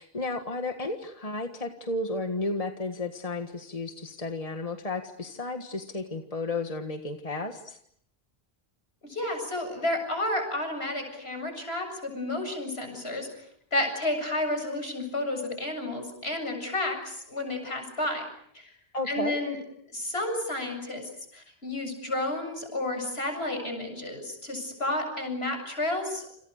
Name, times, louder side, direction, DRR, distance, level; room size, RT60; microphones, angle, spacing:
voice 1, 0.0-7.8 18.9-19.4, left 2 dB, 35° left, 6 dB, 1.8 m, -33 dB
voice 2, 9.0-13.3 13.7-18.2 18.5-18.7 19.1-19.6 19.9-26.3, left 1 dB, 75° left, 5 dB, 7.7 m, -31 dB
28.5 x 27.5 x 6.6 m, 0.68 s
omnidirectional pair, 1.1 m